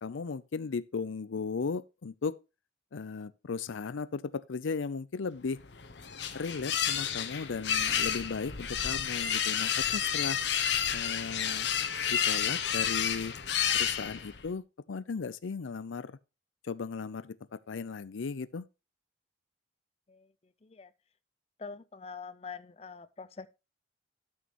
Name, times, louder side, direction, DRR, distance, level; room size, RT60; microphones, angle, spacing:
voice 1, 0.0-2.4 2.9-5.6 6.3-10.4 10.9-11.7 12.1-13.3 13.7-16.2 16.6-18.7, left 5 dB, 85° left, 0.5 m, -36 dB
sound 1, 5.6-14.5, left 8 dB, 65° left, 1.0 m, -30 dB
voice 2, 21.6-23.5, left 5 dB, 30° left, 0.5 m, -44 dB
12.5 x 6.3 x 3.0 m
head